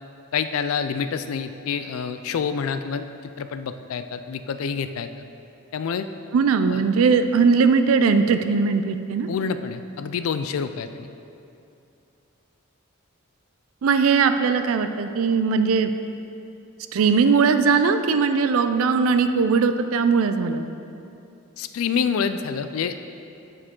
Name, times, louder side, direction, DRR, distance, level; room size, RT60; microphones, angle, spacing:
voice 1, 0.3-3.1 3.4-5.1 5.7-6.1 6.7-6.8 9.3-11.1 21.6-23.0, left 6 dB, 80° left, 10 dB, 0.4 m, -27 dB
voice 2, 6.3-9.3 13.8-15.9 16.9-20.7, right 5 dB, 80° right, 9 dB, 0.4 m, -19 dB
8.4 x 4.9 x 3.7 m, 2.7 s
head